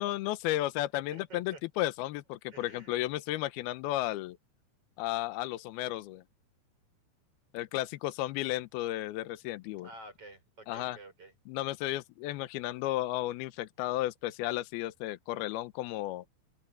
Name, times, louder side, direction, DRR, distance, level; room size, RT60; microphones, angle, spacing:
voice 1, 0.0-4.4 5.0-6.2 7.5-9.9 10.7-11.0 11.5-16.2, left 15 dB, 80° left, 2.3 m, -33 dB
voice 2, 1.1-1.6 2.5-2.9 9.8-11.3, right 2 dB, 30° right, 7.7 m, -50 dB
open air
omnidirectional pair, 5.4 m